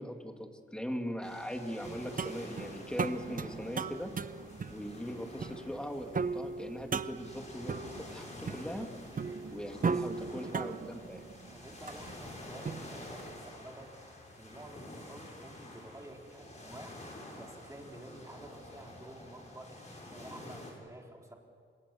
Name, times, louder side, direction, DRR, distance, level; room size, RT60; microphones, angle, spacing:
voice 1, 0.0-4.1 4.7-8.9 9.5-11.3, equal, 5° left, 4 dB, 2.2 m, -40 dB
sound 1, 1.2-20.7, left 1 dB, 35° left, 6.4 m, -49 dB
sound 2, 1.8-13.4, right 5 dB, 40° right, 0.7 m, -38 dB
voice 2, 9.1-9.5 9.8-10.6 11.0-11.1 11.4-21.3, right 1 dB, 15° right, 0 dB, 3.8 m, -51 dB
28.5 x 26.5 x 7.0 m, 2.2 s
wide cardioid pair, 155°, 21 cm